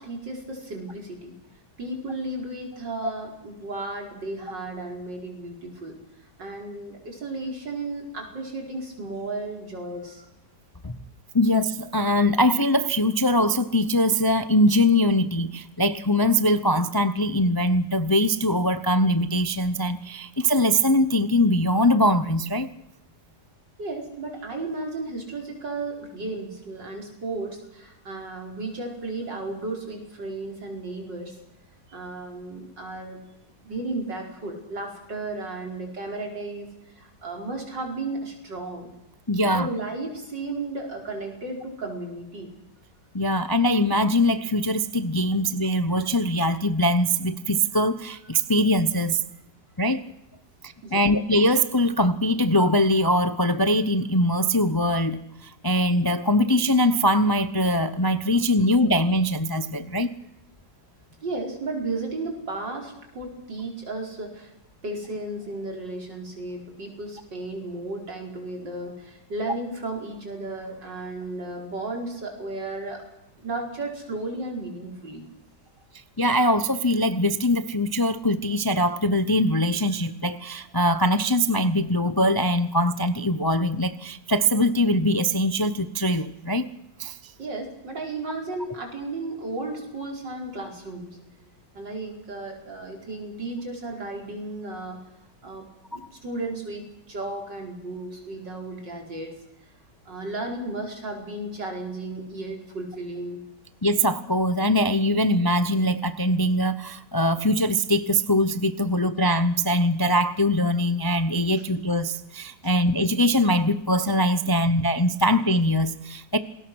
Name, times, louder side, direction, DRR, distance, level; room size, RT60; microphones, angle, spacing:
voice 1, 0.0-1.3 1.8-6.0 6.4-10.3 23.8-31.4 31.9-33.2 33.6-36.7 37.0-38.9 39.5-42.5 50.8-51.1 61.2-64.5 64.8-73.0 73.4-75.3 87.4-91.1 91.7-95.0 95.4-95.7 95.9-96.8 97.1-99.3 100.1-103.4, right 2 dB, 85° right, 1 dB, 5.5 m, -34 dB
voice 2, 11.3-22.7 39.3-39.7 43.1-49.2 49.8-50.0 50.6-60.1 76.2-86.7 87.0-87.3 103.8-116.4, equal, 25° left, 12 dB, 0.5 m, -22 dB
28.5 x 20.5 x 6.3 m, 0.87 s
omnidirectional pair, 1.9 m